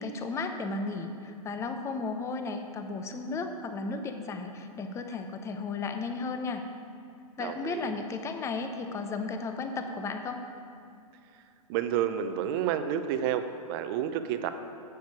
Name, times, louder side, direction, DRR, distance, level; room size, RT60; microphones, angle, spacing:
voice 1, 0.0-6.6 7.4-10.4, left 4 dB, 15° left, 6 dB, 0.7 m, -34 dB
voice 2, 7.4-7.9 11.7-14.5, right 9 dB, 40° right, 9 dB, 0.7 m, -30 dB
9.4 x 8.0 x 4.8 m, 2.4 s
hypercardioid pair, 125°, 19 cm